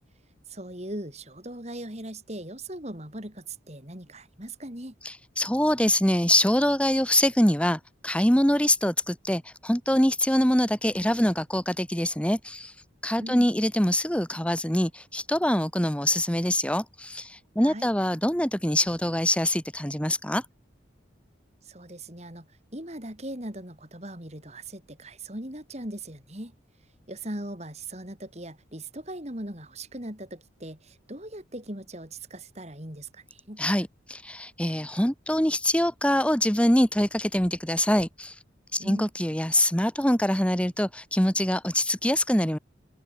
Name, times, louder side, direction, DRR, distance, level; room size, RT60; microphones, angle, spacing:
voice 1, 0.5-4.9 13.2-13.5 17.6-17.9 21.6-22.5 22.7-26.5 27.1-33.6 38.8-39.1, right 1 dB, 35° right, 4.8 m, -39 dB
voice 2, 5.0-12.7 13.0-20.4 33.6-38.3 38.7-42.6, left 1 dB, 5° left, 1.7 m, -24 dB
head